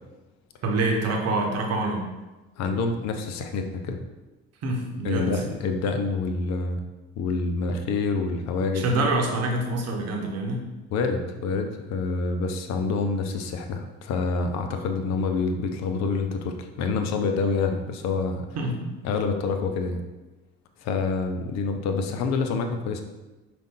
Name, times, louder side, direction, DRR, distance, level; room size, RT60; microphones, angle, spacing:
voice 1, 0.6-2.1 4.6-5.3 8.7-10.6 18.6-19.0, right 2 dB, 50° right, 2 dB, 0.9 m, -26 dB
voice 2, 2.6-4.0 5.0-6.8 7.2-8.9 10.9-18.5 19.0-20.0 20.8-23.0, left 4 dB, 60° left, 6 dB, 0.6 m, -27 dB
5.1 x 2.5 x 3.7 m, 1.1 s
hypercardioid pair, 55°, 31 cm